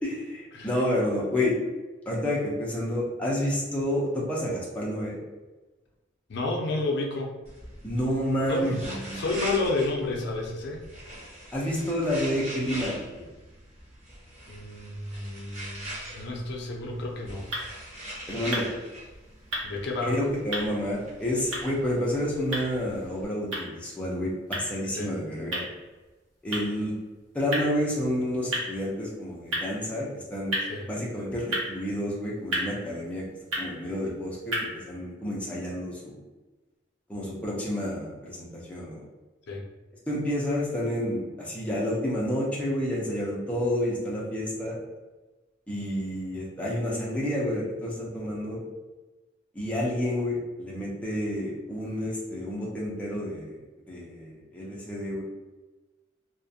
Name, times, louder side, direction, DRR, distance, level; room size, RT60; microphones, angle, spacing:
voice 1, 0.0-1.6 2.1-5.2 7.8-9.2 11.5-13.3 18.3-18.7 20.0-25.7 26.4-27.0 27.3-30.6 30.9-33.2 33.6-36.2 37.1-39.0 40.1-44.8 45.7-48.6 49.5-53.6 53.9-55.2, left 1 dB, 5° left, -5 dB, 0.5 m, -29 dB
voice 2, 6.3-7.3 8.5-10.8 14.4-17.5 19.6-20.1 24.9-25.1 30.6-30.9 39.5-39.6, left 2 dB, 60° left, 0 dB, 0.5 m, -31 dB
sound 1, 7.5-23.3, right 1 dB, 35° right, 0.8 m, -42 dB
sound 2, 16.9-34.9, equal, 75° right, 0.8 m, -37 dB
2.4 x 2.1 x 2.6 m, 1.2 s
head